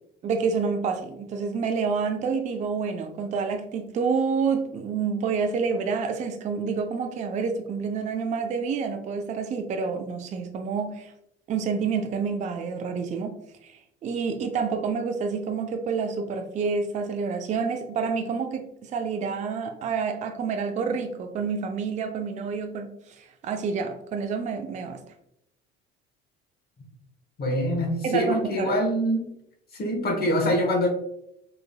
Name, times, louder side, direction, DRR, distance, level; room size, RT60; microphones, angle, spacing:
voice 1, 0.2-11.1 11.5-13.3 13.6-22.9 23.2-25.0 28.0-28.7, right 5 dB, 25° right, 7 dB, 0.4 m, -28 dB
voice 2, 27.4-29.3 29.8-30.9, equal, 30° left, 2 dB, 0.9 m, -24 dB
2.9 x 2.4 x 2.2 m, 0.78 s
figure-of-eight pair, 60°, 30 cm